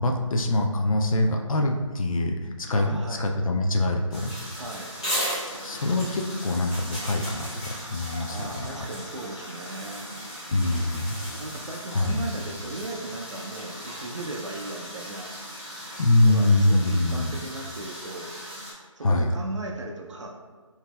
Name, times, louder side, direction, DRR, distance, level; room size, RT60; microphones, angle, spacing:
voice 1, 0.0-4.3 5.6-8.9 10.5-11.2 11.9-12.3 16.0-17.3 19.0-19.3, left 2 dB, 85° left, 2 dB, 0.4 m, -24 dB
voice 2, 2.7-3.2 4.5-4.9 8.2-10.1 11.4-15.3 16.2-18.3 19.0-20.4, right 2 dB, 60° right, 2 dB, 0.5 m, -37 dB
sound 1, 4.1-18.7, equal, 10° left, 0.4 m, -37 dB
3.9 x 2.7 x 2.2 m, 1.5 s
figure-of-eight pair, 160°, 17 cm